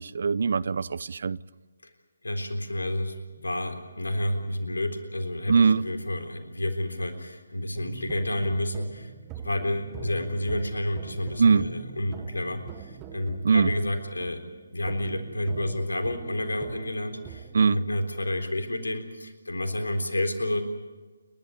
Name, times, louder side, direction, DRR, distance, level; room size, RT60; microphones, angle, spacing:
voice 1, 0.0-1.4 5.5-5.8 11.4-11.7 13.4-13.7 17.5-17.8, right 5 dB, 55° right, 0.6 m, -21 dB
voice 2, 2.2-9.1 9.4-14.4 14.7-20.6, left 1 dB, 75° left, 3.8 m, -30 dB
sound 1, 7.7-17.8, right 8 dB, 20° right, 1.5 m, -44 dB
30.0 x 12.0 x 9.9 m
figure-of-eight pair, 145°, 0 cm